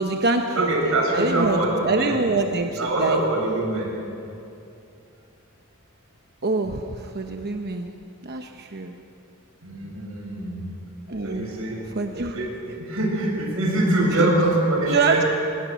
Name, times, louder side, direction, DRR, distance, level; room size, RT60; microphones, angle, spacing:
voice 1, 0.0-3.2 6.4-7.9 8.2-9.0 11.1-11.5 11.8-12.4 14.1-14.3 14.9-15.2, right 3 dB, 50° right, 4 dB, 1.0 m, -25 dB
voice 2, 0.6-2.2 2.8-3.9 9.6-10.6 11.2-11.8 12.3-15.3, right 1 dB, 75° right, -2 dB, 6.8 m, -24 dB
25.0 x 20.0 x 6.4 m, 2.7 s
head